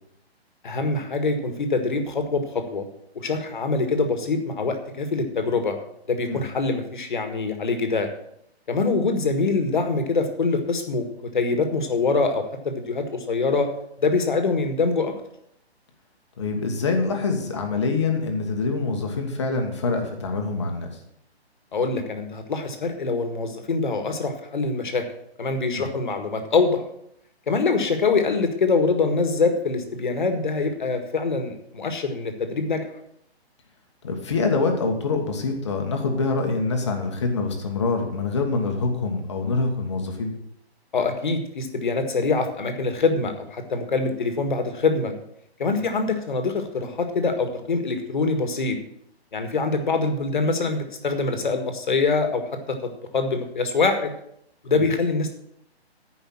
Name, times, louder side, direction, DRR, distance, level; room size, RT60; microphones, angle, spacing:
voice 1, 0.6-2.9 3.2-5.8 6.1-8.1 8.7-13.7 14.0-15.1 21.7-25.0 25.4-26.8 27.5-32.9 40.9-45.1 45.6-48.8 49.3-54.1 54.6-55.4, left 4 dB, 45° left, 6 dB, 1.8 m, -24 dB
voice 2, 16.4-20.9 25.7-25.9 34.0-40.3 45.7-45.8 54.7-54.9, left 3 dB, 25° left, 3 dB, 1.5 m, -25 dB
13.0 x 5.6 x 7.3 m, 0.74 s
hypercardioid pair, 175°, 33 cm